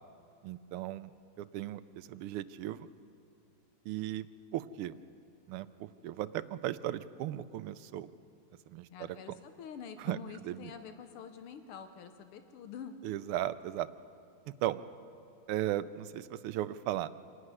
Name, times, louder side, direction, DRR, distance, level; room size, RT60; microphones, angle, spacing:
voice 1, 0.4-1.1 1.4-2.9 3.8-4.3 4.5-4.9 5.5-8.1 8.7-9.4 10.0-10.2 10.4-10.7 13.0-13.9 14.5-14.8 15.5-17.1, right 13 dB, 85° right, 14 dB, 1.6 m, -36 dB
voice 2, 8.9-13.0, left 7 dB, 90° left, 8 dB, 1.9 m, -47 dB
26.5 x 11.5 x 9.7 m, 2.6 s
omnidirectional pair, 2.4 m